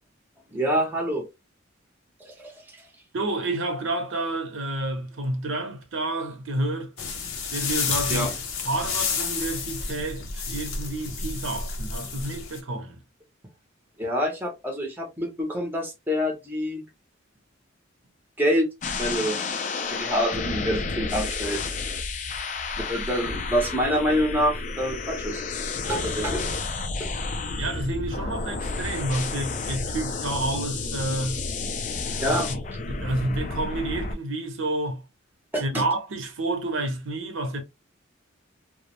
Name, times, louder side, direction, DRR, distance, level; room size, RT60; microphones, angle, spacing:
voice 1, 0.5-1.3 2.2-2.8 8.1-8.3 14.0-16.8 18.4-19.4 19.9-21.7 22.9-25.4 25.8-26.5 27.0-27.1 32.2-32.5 35.5-35.8, equal, 10° right, 0.6 m, -26 dB
voice 2, 3.1-6.9 7.5-8.3 8.6-13.0 27.5-31.4 32.2-32.6 32.9-35.0 35.6-37.6, right 2 dB, 70° right, 0.7 m, -29 dB
sound 1, 7.0-12.6, left 5 dB, 80° left, 0.6 m, -30 dB
sound 2, 18.8-34.1, left 4 dB, 35° left, 0.3 m, -31 dB
2.2 x 2.0 x 2.9 m
head